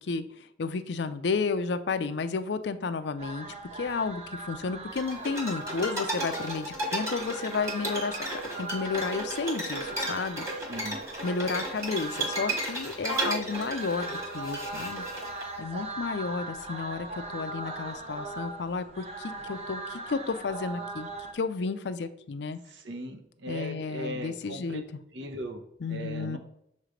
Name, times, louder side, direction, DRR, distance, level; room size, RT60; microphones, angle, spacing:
voice 1, 0.0-3.5 3.7-10.4 11.2-15.0 15.6-22.6 23.5-24.8 25.8-26.4, left 4 dB, 65° left, 11 dB, 0.5 m, -32 dB
sound 1, 3.2-21.3, right 2 dB, 35° right, 0.6 m, -40 dB
sound 2, 5.0-15.4, right 1 dB, 15° right, 1.5 m, -34 dB
voice 2, 22.7-24.8 25.1-25.6 25.9-26.4, right 1 dB, 70° right, 6 dB, 0.9 m, -38 dB
6.5 x 3.2 x 5.0 m, 0.77 s
head